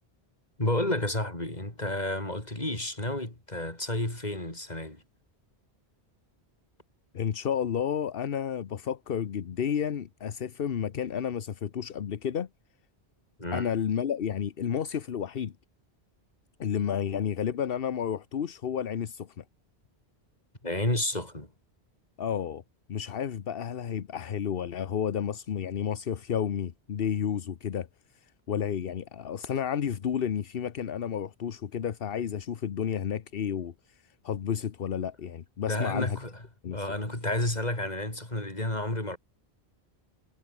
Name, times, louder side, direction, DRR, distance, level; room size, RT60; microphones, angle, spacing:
voice 1, 0.6-5.0 13.4-13.7 20.6-21.5 35.6-36.4 36.7-39.2, left 1 dB, 40° left, 5.1 m, -31 dB
voice 2, 7.1-12.5 13.5-15.5 16.6-19.4 22.2-22.6 22.9-27.9 28.1-36.2 36.6-36.9, left 8 dB, 60° left, 1.1 m, -31 dB
omnidirectional pair, 1.1 m